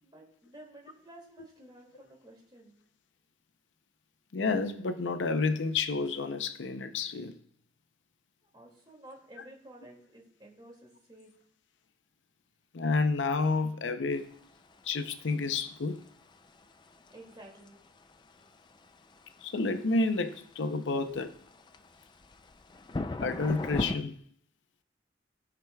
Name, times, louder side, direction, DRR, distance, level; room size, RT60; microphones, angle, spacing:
voice 1, 0.0-2.7 8.5-11.3 17.1-17.8, right 1 dB, 25° right, 2.3 m, -52 dB
voice 2, 4.3-7.3 12.7-14.3 14.8-16.0 19.4-21.3 23.2-24.2, left 3 dB, 85° left, 0.6 m, -30 dB
sound 1, 14.2-24.0, left 2 dB, 25° left, 0.4 m, -40 dB
16.0 x 5.9 x 2.3 m
head